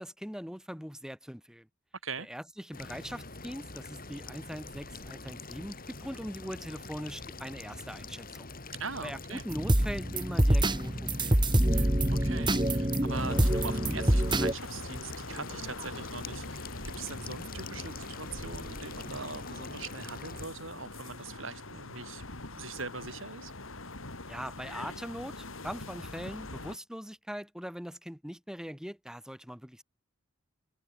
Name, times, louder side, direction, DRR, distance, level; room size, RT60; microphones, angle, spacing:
voice 1, 0.0-1.7 2.2-8.5 9.0-11.4 24.3-29.8, equal, 5° right, 3.5 m, -41 dB
sound 1, 2.7-20.5, left 3 dB, 45° left, 7.0 m, -44 dB
voice 2, 8.8-9.4 11.7-22.2 22.5-23.5, right 4 dB, 70° right, 4.9 m, -42 dB
sound 2, 9.5-14.5, right 1 dB, 20° right, 2.1 m, -26 dB
sound 3, 13.1-26.8, left 2 dB, 75° left, 4.2 m, -43 dB
head